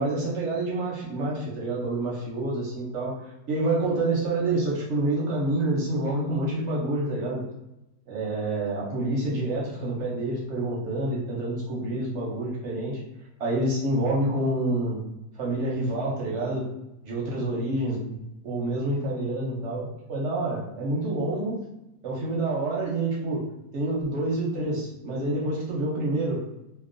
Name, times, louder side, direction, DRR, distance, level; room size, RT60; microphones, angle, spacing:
voice 1, 0.0-3.2 3.5-7.4 8.1-13.0 13.4-15.0 15.4-16.7 17.0-18.2 18.4-21.6 22.0-23.4 23.7-26.4, right 2 dB, 65° right, -4 dB, 0.7 m, -27 dB
2.8 x 2.0 x 2.5 m, 0.92 s
omnidirectional pair, 1.8 m